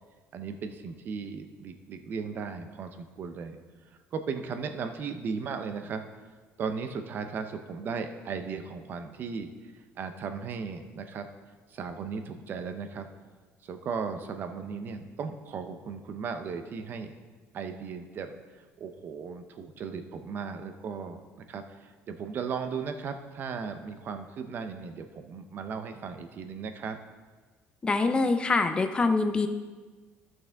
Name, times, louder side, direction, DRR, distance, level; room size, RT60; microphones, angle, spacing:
voice 1, 0.3-3.6 4.1-6.0 6.6-9.5 10.0-11.3 11.7-13.1 13.6-17.1 17.5-21.2 21.5-27.0, right 5 dB, 45° right, 8 dB, 0.8 m, -36 dB
voice 2, 27.8-29.5, left 3 dB, 20° left, 7 dB, 0.6 m, -24 dB
13.5 x 6.2 x 3.6 m, 1.4 s
cardioid pair, 125°, 5 cm